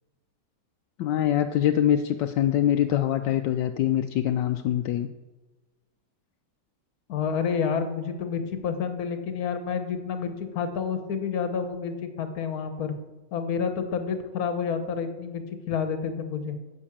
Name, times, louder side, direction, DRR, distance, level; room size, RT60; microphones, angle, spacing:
voice 1, 1.0-5.1, left 11 dB, 80° left, 6 dB, 1.2 m, -24 dB
voice 2, 7.1-12.9 13.3-16.6, left 6 dB, 60° left, 9 dB, 1.5 m, -29 dB
9.8 x 7.5 x 7.3 m, 1.2 s
omnidirectional pair, 1.9 m